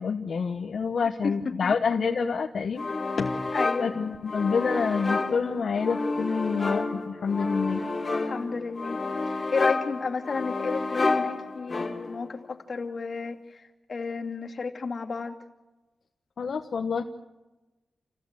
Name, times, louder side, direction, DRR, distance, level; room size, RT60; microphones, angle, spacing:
voice 1, 0.0-2.8 3.2-3.4 3.8-7.8 16.4-17.0, left 5 dB, 65° left, 4 dB, 1.2 m, -27 dB
voice 2, 1.2-1.7 3.5-3.9 8.2-9.0 9.3-15.3, left 4 dB, 50° left, 2 dB, 2.6 m, -32 dB
sound 1, 2.8-12.3, left 3 dB, 35° left, 2.8 m, -30 dB
28.5 x 16.0 x 8.3 m, 1.1 s
wide cardioid pair, 100°, 0 cm